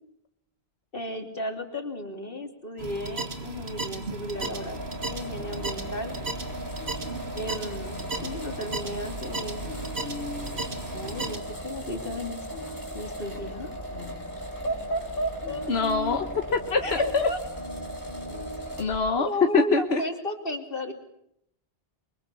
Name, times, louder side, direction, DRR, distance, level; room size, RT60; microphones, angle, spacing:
voice 1, 0.9-4.8 5.1-6.1 7.3-9.6 10.9-12.4 12.9-13.7 14.6-15.7 16.8-17.4 18.8-18.9 19.2-20.9, equal, 60° left, 5 dB, 3.3 m, -34 dB
sound 1, 2.8-11.4, right 2 dB, 85° right, 2.6 m, -35 dB
sound 2, 4.4-19.0, equal, 20° right, 5.6 m, -38 dB
sound 3, 5.4-18.9, left 1 dB, 65° right, 5.4 m, -44 dB
voice 2, 15.7-16.3 16.5-17.2 18.8-19.3 19.5-20.0, left 4 dB, 85° left, 6 dB, 1.5 m, -24 dB
27.5 x 23.5 x 6.9 m, 0.76 s
omnidirectional pair, 1.0 m